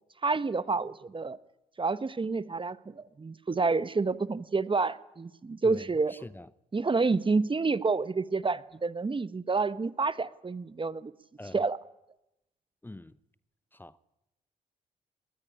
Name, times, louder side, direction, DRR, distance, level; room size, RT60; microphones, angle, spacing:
voice 1, 0.2-1.4 1.8-6.1 6.7-11.1 11.5-11.8, right 4 dB, 30° right, 1.1 m, -29 dB
voice 2, 5.6-6.5 11.4-11.7 12.8-13.2 13.7-14.0, left 1 dB, 10° left, 0.8 m, -44 dB
20.5 x 20.0 x 9.9 m
hypercardioid pair, 45°, 18 cm